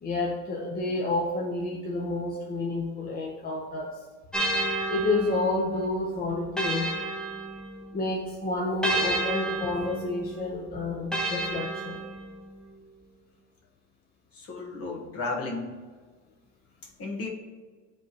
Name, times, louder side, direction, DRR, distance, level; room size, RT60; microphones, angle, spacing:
voice 1, 0.0-4.0 4.9-6.9 7.9-12.0, left 2 dB, 30° left, -2 dB, 0.9 m, -29 dB
sound 1, 4.3-8.1 8.8-12.5, right 2 dB, ahead, 1.0 m, -31 dB
voice 2, 14.4-15.7 17.0-17.3, left 3 dB, 50° left, 0 dB, 1.4 m, -33 dB
9.1 x 3.5 x 3.0 m, 1.4 s
cardioid pair, 110°, 31 cm